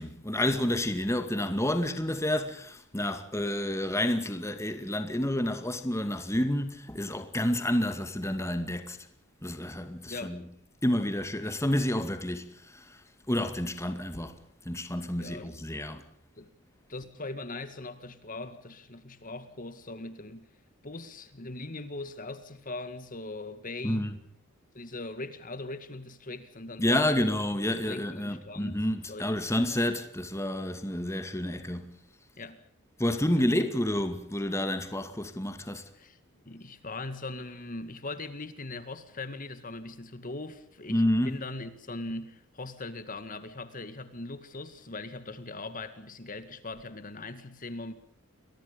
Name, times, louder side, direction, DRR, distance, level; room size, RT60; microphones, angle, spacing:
voice 1, 0.0-9.0 9.4-10.4 10.8-13.0 13.3-14.4 14.7-16.0 23.8-24.2 26.8-31.9 33.0-35.8 40.9-41.4, left 1 dB, 15° left, 2.2 m, -29 dB
voice 2, 10.1-10.4 15.2-15.7 16.4-16.5 16.9-20.5 20.8-24.1 24.7-27.3 27.7-28.8 29.1-29.6 32.4-32.6 33.4-33.5 35.9-36.2 36.5-47.9, left 2 dB, 40° left, 2.1 m, -40 dB
30.0 x 23.0 x 5.3 m
head